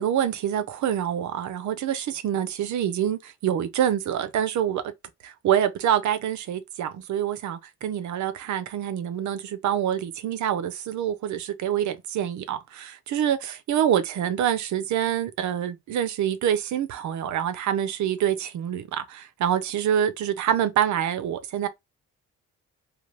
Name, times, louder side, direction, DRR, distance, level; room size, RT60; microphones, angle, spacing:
voice 1, 0.0-4.8 5.2-21.7, right 10 dB, 70° right, 0.7 m, -26 dB
3.3 x 2.4 x 2.4 m
cardioid pair, 90°, 30 cm